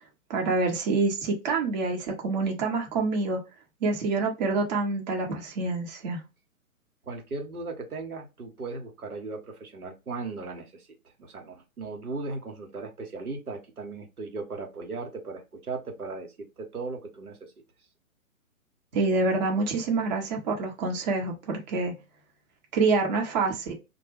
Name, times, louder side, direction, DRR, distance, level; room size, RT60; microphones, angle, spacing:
voice 1, 0.3-3.4 3.8-6.2 18.9-21.9 22.7-23.7, right 3 dB, 30° right, 0.9 m, -26 dB
voice 2, 7.0-17.5, right 3 dB, 85° right, 1.0 m, -37 dB
2.2 x 2.1 x 3.3 m
figure-of-eight pair, 125°, 43 cm